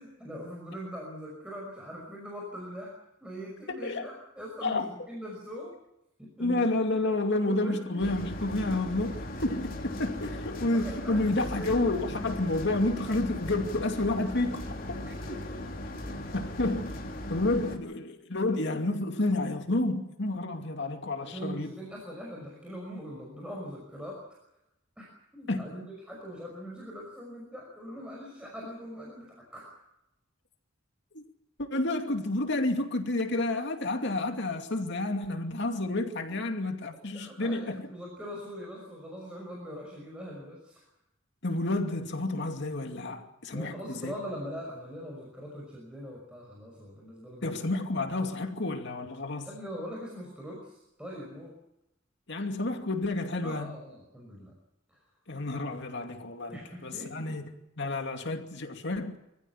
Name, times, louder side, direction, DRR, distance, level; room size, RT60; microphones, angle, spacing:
voice 1, 0.0-2.9 3.2-5.8 6.2-6.6 7.5-8.0 9.9-12.0 15.1-15.7 16.0-16.1 21.2-24.2 25.0-29.7 37.1-40.8 43.5-47.6 49.5-51.6 53.4-54.5 54.9-55.0 56.5-57.4, equal, 5° right, -2 dB, 5.8 m, -42 dB
voice 2, 3.7-4.1 4.6-4.9 6.4-15.0 16.3-21.7 25.5-25.6 31.1-31.2 31.6-37.9 41.4-44.1 47.4-49.5 52.3-53.7 55.3-57.4 57.8-59.2, left 2 dB, 60° left, 5 dB, 2.5 m, -30 dB
sound 1, 8.0-17.8, left 1 dB, 45° left, 3.2 m, -38 dB
25.0 x 15.0 x 9.7 m, 0.87 s
head